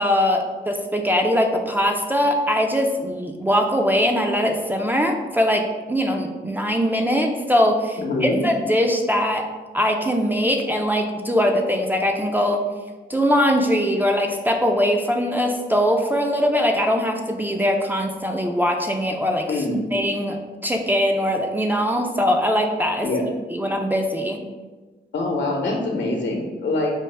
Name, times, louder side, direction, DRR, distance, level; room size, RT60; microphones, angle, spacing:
voice 1, 0.0-9.5 9.7-12.6 13.1-19.5 19.9-23.1 23.5-24.4, equal, 10° right, 3 dB, 0.4 m, -21 dB
voice 2, 8.0-8.4 19.5-19.9 23.0-23.2 25.1-26.9, left 2 dB, 75° left, 1 dB, 0.8 m, -24 dB
4.5 x 2.1 x 3.3 m, 1.3 s
cardioid pair, 65°, 19 cm